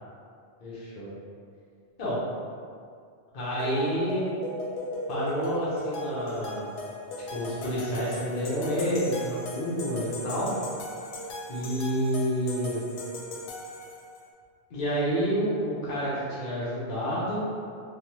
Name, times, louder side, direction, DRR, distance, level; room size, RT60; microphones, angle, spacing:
voice 1, 0.6-1.1 2.0-2.2 3.3-4.3 5.1-6.7 7.3-10.5 11.5-12.8 14.7-17.4, equal, 50° left, -8 dB, 0.8 m, -29 dB
sound 1, 3.6-14.2, left 1 dB, 85° left, 0.9 m, -38 dB
3.2 x 2.1 x 2.8 m, 2.3 s
omnidirectional pair, 1.1 m